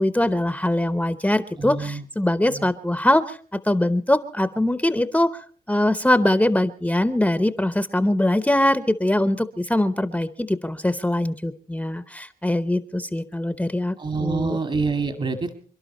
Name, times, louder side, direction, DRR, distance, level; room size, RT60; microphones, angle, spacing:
voice 1, 0.0-14.6, left 1 dB, 10° left, 12 dB, 0.9 m, -22 dB
voice 2, 1.6-2.0 2.5-2.7 14.0-15.6, right 4 dB, 45° right, 7 dB, 2.0 m, -26 dB
28.0 x 11.5 x 4.3 m, 0.44 s
cardioid pair, 80°, 15 cm